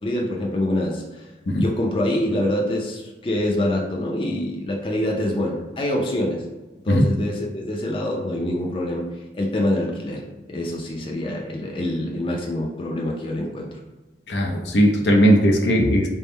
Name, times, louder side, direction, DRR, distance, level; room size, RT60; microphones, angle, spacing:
voice 1, 0.0-6.4 6.8-9.0 9.3-10.2 10.5-13.7, left 1 dB, 30° left, -1 dB, 0.4 m, -25 dB
voice 2, 14.3-16.1, equal, 80° left, 1 dB, 0.6 m, -18 dB
3.5 x 2.1 x 4.2 m, 1.2 s
head